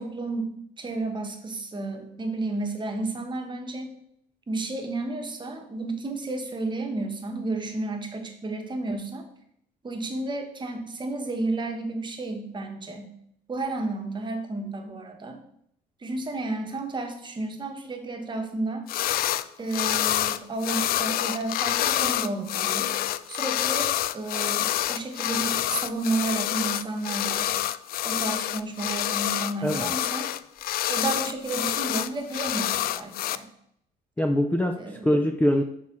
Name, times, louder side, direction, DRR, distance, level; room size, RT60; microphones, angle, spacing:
voice 1, 0.0-3.9 4.5-9.3 9.8-13.1 13.5-15.4 16.0-18.9 19.6-22.9 23.3-27.5 28.0-30.3 30.9-33.5 34.8-35.1, right 2 dB, 25° right, 5 dB, 1.3 m, -32 dB
sound 1, 18.9-19.4 19.7-33.4, left 13 dB, 60° left, 0.4 m, -27 dB
voice 2, 29.6-29.9 34.2-35.6, left 1 dB, 10° left, 4 dB, 0.5 m, -23 dB
6.6 x 4.3 x 6.0 m, 0.72 s
cardioid pair, 110°, 17 cm